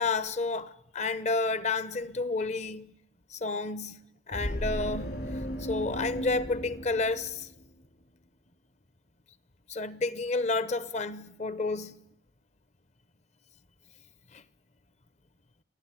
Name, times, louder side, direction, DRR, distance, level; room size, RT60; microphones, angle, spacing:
voice 1, 0.0-2.9 3.3-5.2 5.6-7.5 9.7-12.0 14.3-14.4, left 3 dB, 40° left, 0.8 m, -31 dB
sound 1, 4.3-7.8, equal, 55° left, 2.6 m, -35 dB
24.0 x 15.0 x 9.9 m
head